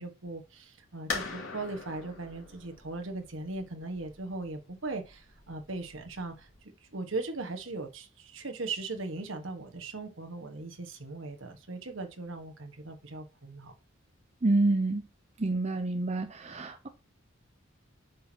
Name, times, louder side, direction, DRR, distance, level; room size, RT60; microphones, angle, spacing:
voice 1, 0.0-13.7, right 3 dB, 65° right, 1.5 m, -39 dB
sound 1, 1.1-6.6, left 4 dB, 80° left, 2.9 m, -42 dB
voice 2, 14.4-15.0 15.4-16.9, right 2 dB, 35° right, 0.6 m, -28 dB
8.4 x 6.2 x 2.9 m
head